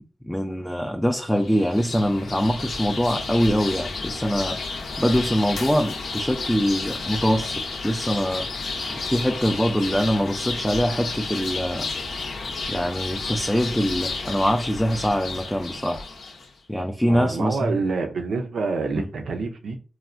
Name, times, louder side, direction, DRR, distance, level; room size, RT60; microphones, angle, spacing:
voice 1, 0.2-4.6 5.0-7.5 7.8-8.5 9.1-11.9 12.7-16.0 16.7-17.8 19.0-19.1, equal, 5° left, 0.3 m, -23 dB
sound 1, 1.3-16.5, left 3 dB, 80° left, 0.5 m, -32 dB
voice 2, 17.1-19.8, right 4 dB, 80° right, 0.5 m, -27 dB
3.1 x 2.1 x 2.4 m
cardioid pair, 65°, 0 cm